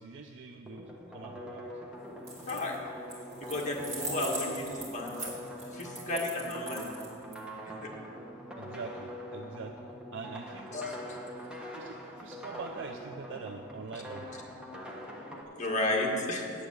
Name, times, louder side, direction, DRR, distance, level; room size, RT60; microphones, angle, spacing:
voice 1, 0.0-1.7 8.6-10.7 11.7-14.4, right 4 dB, 65° right, 5 dB, 0.5 m, -44 dB
sound 1, 0.7-15.4, equal, 5° right, 1.2 m, -44 dB
sound 2, 2.2-2.8 3.1-7.3, right 2 dB, 35° right, 3.1 m, -41 dB
voice 2, 2.5-2.8 3.4-5.3 5.7-6.9 7.8-7.9 10.7-11.2 15.6-16.5, left 2 dB, 40° left, -1 dB, 1.8 m, -33 dB
8.7 x 8.5 x 7.9 m, 2.4 s
head